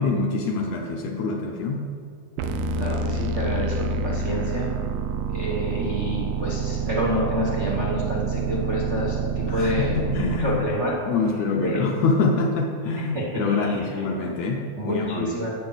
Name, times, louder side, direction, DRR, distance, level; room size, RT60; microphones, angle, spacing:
voice 1, 0.0-1.9 9.5-10.6 11.1-15.3, left 3 dB, 75° left, 2 dB, 1.7 m, -25 dB
sound 1, 2.4-10.4, right 4 dB, 85° right, 2.2 m, -27 dB
voice 2, 2.7-3.7 4.0-4.7 5.3-9.9 10.4-10.9 11.6-11.8 13.0-13.3 13.6-13.9 14.8-15.5, equal, 65° right, -4 dB, 0.7 m, -28 dB
11.5 x 8.7 x 4.0 m, 2.3 s
omnidirectional pair, 3.7 m